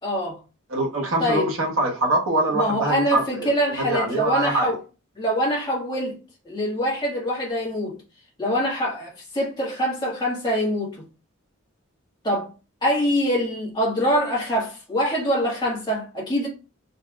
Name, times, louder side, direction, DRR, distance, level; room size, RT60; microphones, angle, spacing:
voice 1, 0.0-0.4 1.2-1.5 2.5-4.8 5.2-6.2 6.4-8.0 8.4-11.0 12.2-12.5 12.8-16.5, equal, 20° left, 1.7 m, -24 dB
voice 2, 0.7-4.7, right 2 dB, 65° right, 1.1 m, -24 dB
4.2 x 3.4 x 2.3 m
head